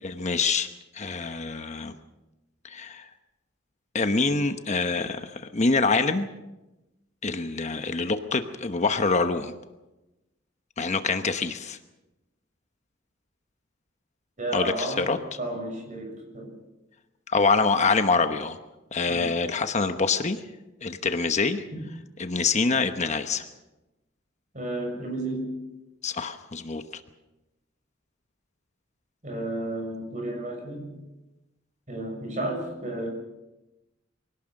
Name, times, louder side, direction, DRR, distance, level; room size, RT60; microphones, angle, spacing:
voice 1, 0.0-0.7 0.9-1.9 2.6-3.1 3.9-6.3 7.2-9.5 10.8-11.8 14.5-15.2 17.3-18.6 18.9-20.4 20.8-21.6 22.2-23.5 26.0-26.8, left 4 dB, 35° left, 8 dB, 1.0 m, -25 dB
voice 2, 14.4-16.5 19.1-19.3 21.7-21.8 24.5-25.5 29.2-30.9 31.9-33.1, right 1 dB, 40° right, 2 dB, 6.8 m, -32 dB
24.5 x 18.0 x 6.5 m, 1.0 s
head